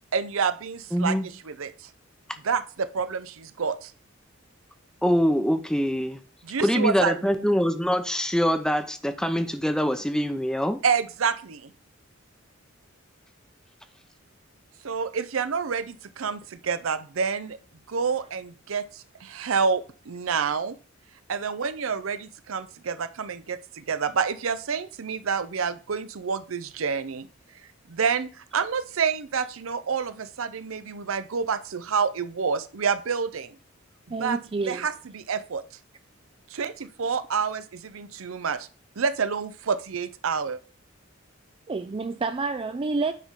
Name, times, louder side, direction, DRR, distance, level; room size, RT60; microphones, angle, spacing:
voice 1, 0.1-1.2 1.4-1.9 2.4-3.9 6.4-7.5 10.8-11.7 14.8-17.6 17.9-20.7 21.3-27.3 27.9-33.6 34.2-34.4 34.7-35.6 36.5-38.7 39.0-40.6, right 6 dB, 90° right, 0.6 m, -28 dB
voice 2, 0.9-1.3 5.0-6.2 6.6-10.8, equal, 5° left, 0.7 m, -24 dB
voice 3, 34.1-34.8 41.7-43.1, right 3 dB, 25° right, 0.4 m, -28 dB
9.1 x 3.7 x 5.6 m
head